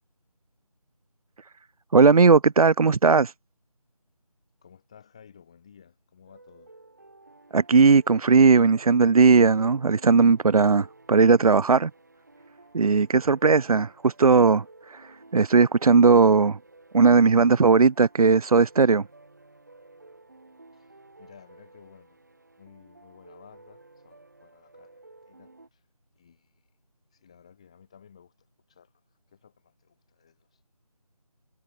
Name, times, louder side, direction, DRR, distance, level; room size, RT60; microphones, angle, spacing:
voice 1, 1.9-3.3 7.5-11.9 12.7-16.6 16.9-19.0, right 4 dB, 75° right, 0.5 m, -18 dB
voice 2, 4.6-6.7 20.7-22.2 22.6-24.9 25.3-25.8 26.2-26.7 27.1-28.9 29.3-30.6, left 7 dB, 10° left, 5.9 m, -55 dB
sound 1, 6.3-25.7, right 2 dB, 30° right, 3.1 m, -53 dB
figure-of-eight pair, 180°, 19 cm